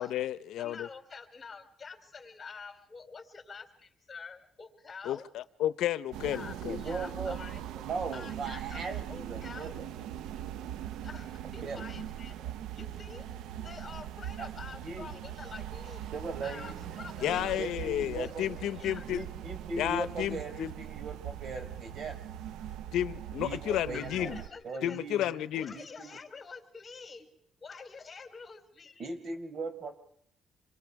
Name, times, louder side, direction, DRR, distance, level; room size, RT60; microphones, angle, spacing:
voice 1, 0.0-0.9 5.0-6.8 17.2-19.3 19.8-20.7 22.9-24.4 24.8-25.7, left 12 dB, 85° left, 15 dB, 0.8 m, -32 dB
voice 2, 0.6-5.3 6.2-6.5 6.8-7.6 8.1-9.7 11.0-12.3 12.8-13.3 13.6-16.1 16.4-17.6 18.0-18.3 18.8-19.0 23.9-25.0 25.5-29.1, left 5 dB, 35° left, 6 dB, 3.7 m, -47 dB
sound 1, 6.1-24.5, right 11 dB, 90° right, 0.8 m, -41 dB
voice 3, 6.6-7.4 7.8-9.9 11.6-11.9 12.4-12.5 14.4-14.5 14.8-15.1 16.1-16.7 17.2-18.5 19.0-22.2 23.4-24.4 24.6-25.4 25.7-26.1 29.0-30.0, right 3 dB, 55° right, 7 dB, 4.3 m, -39 dB
27.5 x 23.5 x 4.8 m, 0.66 s
cardioid pair, 90°, 0 cm